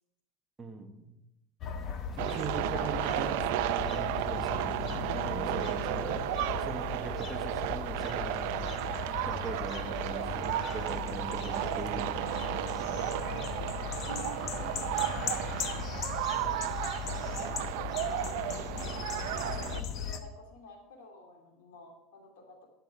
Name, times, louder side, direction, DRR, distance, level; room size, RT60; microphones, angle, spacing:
voice 1, 0.6-1.2 2.1-6.2 6.6-8.7 9.2-12.5, right 4 dB, 15° right, 4 dB, 1.1 m, -41 dB
sound 1, 1.6-20.2, left 7 dB, 40° left, 1.0 m, -38 dB
sound 2, 2.2-19.8, right 13 dB, 70° right, 0.5 m, -33 dB
voice 2, 14.1-17.6 18.1-19.4 19.7-22.7, left 3 dB, 90° left, 2 dB, 2.6 m, -50 dB
11.5 x 6.8 x 4.8 m, 0.91 s
supercardioid pair, 145°, 0 cm